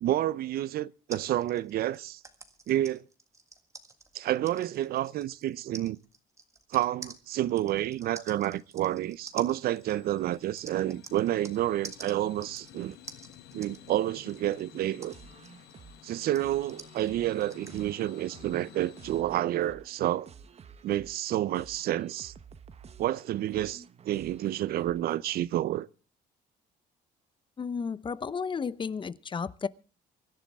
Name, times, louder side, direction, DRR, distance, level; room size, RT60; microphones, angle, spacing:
voice 1, 0.0-2.2 2.7-3.0 4.1-6.0 6.7-13.0 13.5-15.1 16.0-20.3 20.8-22.3 23.0-25.9, right 13 dB, 65° right, 0.6 m, -29 dB
sound 1, 1.1-11.6 11.8-17.8, right 3 dB, 15° right, 1.8 m, -48 dB
sound 2, 8.0-19.2, left 10 dB, 80° left, 1.4 m, -53 dB
sound 3, 15.1-25.4, right 6 dB, 40° right, 1.0 m, -52 dB
voice 2, 27.6-29.7, left 5 dB, 30° left, 0.7 m, -33 dB
24.5 x 11.5 x 3.5 m
cardioid pair, 110°, 17 cm